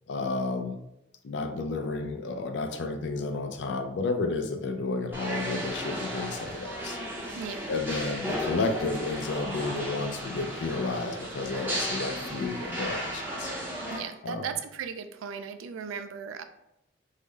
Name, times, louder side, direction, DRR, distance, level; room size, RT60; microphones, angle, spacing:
voice 1, 0.1-0.8 1.2-7.0 7.7-13.5 14.2-14.5, left 3 dB, 65° left, 7 dB, 0.4 m, -31 dB
sound 1, 5.1-14.0, equal, 10° right, 0.6 m, -35 dB
voice 2, 13.9-16.4, right 7 dB, 90° right, 9 dB, 0.3 m, -36 dB
3.6 x 2.0 x 3.3 m, 0.86 s
head